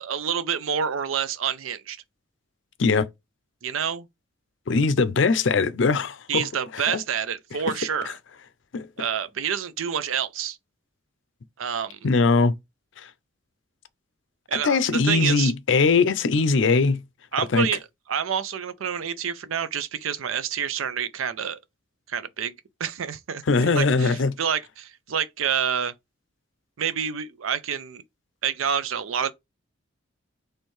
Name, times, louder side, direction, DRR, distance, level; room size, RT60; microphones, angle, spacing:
voice 1, 0.0-2.0 3.6-4.1 6.3-8.1 9.0-10.6 11.6-12.0 14.5-15.5 17.3-21.6 22.1-22.5 22.8-25.9 26.8-28.0 28.4-29.3, right 8 dB, 90° right, 0.5 m, -28 dB
voice 2, 4.7-6.4 6.9-7.0 8.7-8.9 12.0-12.5 14.6-17.0 17.5-17.7 23.5-24.4, left 4 dB, 65° left, 0.5 m, -20 dB
4.4 x 3.2 x 3.1 m
head